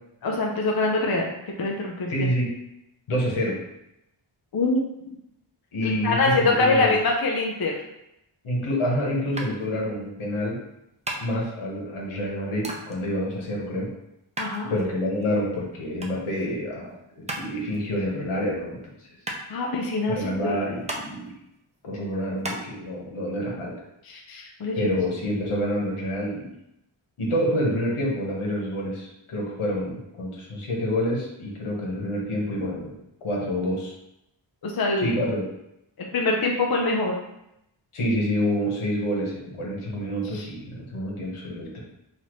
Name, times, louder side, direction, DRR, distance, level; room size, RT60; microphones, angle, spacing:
voice 1, 0.2-2.1 4.5-5.2 5.8-7.8 14.4-14.8 19.5-20.6 24.0-24.9 34.6-35.2 36.0-37.2 40.2-40.5, left 2 dB, 50° left, 0 dB, 0.6 m, -24 dB
voice 2, 2.1-2.5 3.1-3.6 5.7-6.9 8.4-10.6 11.2-13.9 14.7-19.1 20.1-21.3 21.8-23.7 24.8-26.5 27.2-32.9 33.2-33.9 35.0-35.4 37.9-41.8, equal, 85° left, -3 dB, 1.4 m, -27 dB
sound 1, 9.4-22.6, right 1 dB, 15° right, 0.5 m, -38 dB
5.7 x 2.8 x 3.1 m, 0.85 s
wide cardioid pair, 140°, 49 cm